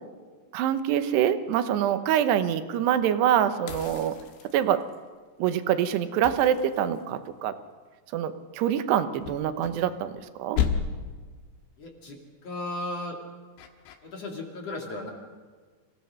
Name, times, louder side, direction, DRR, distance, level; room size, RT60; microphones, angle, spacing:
voice 1, 0.5-4.2 4.5-4.8 5.4-7.5 8.1-10.6, right 10 dB, 75° right, 10 dB, 3.0 m, -25 dB
sound 1, 3.7-5.0 6.2-7.4 9.2-10.3 10.6-11.2 13.6-14.0, left 7 dB, 85° left, 3.7 m, -32 dB
voice 2, 11.8-13.2 14.0-15.1, left 2 dB, 40° left, 1 dB, 2.8 m, -35 dB
26.0 x 16.5 x 6.4 m, 1.5 s
omnidirectional pair, 5.1 m